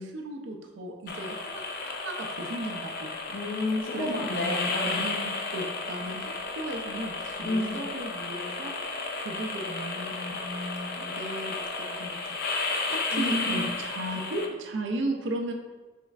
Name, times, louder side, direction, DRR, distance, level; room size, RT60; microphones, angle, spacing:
voice 1, 0.0-3.1 3.9-4.3 4.8-8.7 9.2-12.4 12.9-15.5, right 1 dB, 60° right, 2 dB, 0.4 m, -36 dB
sound 1, 1.1-14.5, left 3 dB, 50° left, 0.3 m, -33 dB
voice 2, 3.3-5.0 7.4-7.8 13.1-13.6, left 1 dB, 65° left, -1 dB, 0.7 m, -30 dB
4.3 x 3.0 x 2.4 m, 1.3 s
head